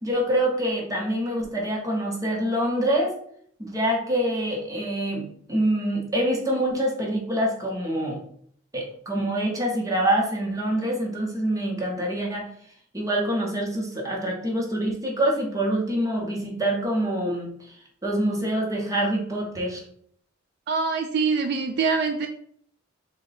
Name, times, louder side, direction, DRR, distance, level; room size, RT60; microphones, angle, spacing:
voice 1, 0.0-3.1 3.6-8.2 8.7-12.5 12.9-17.5 18.0-19.8, right 1 dB, 15° right, -1 dB, 0.9 m, -25 dB
voice 2, 20.7-22.3, right 4 dB, 55° right, 6 dB, 0.3 m, -24 dB
3.7 x 2.2 x 4.0 m, 0.63 s
head